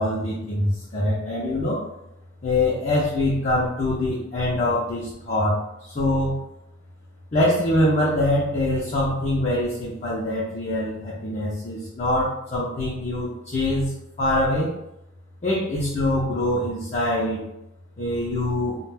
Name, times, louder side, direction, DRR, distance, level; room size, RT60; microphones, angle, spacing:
voice 1, 0.0-1.8 2.4-6.4 7.3-13.9 14.2-14.7 15.4-17.4 18.0-18.8, left 1 dB, 35° left, -7 dB, 0.5 m, -24 dB
2.4 x 2.1 x 3.3 m, 0.88 s
head